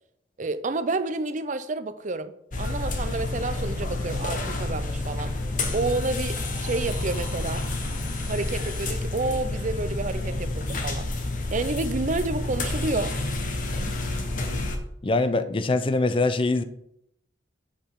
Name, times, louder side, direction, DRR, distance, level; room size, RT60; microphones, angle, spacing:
voice 1, 0.4-5.4 5.7-7.7 8.3-11.1 11.5-13.1, right 3 dB, 40° right, 0.5 m, -29 dB
sound 1, 2.5-14.8, left 2 dB, 45° left, 1.1 m, -29 dB
voice 2, 15.0-16.6, left 2 dB, 30° left, 0.5 m, -23 dB
7.6 x 6.8 x 3.6 m
head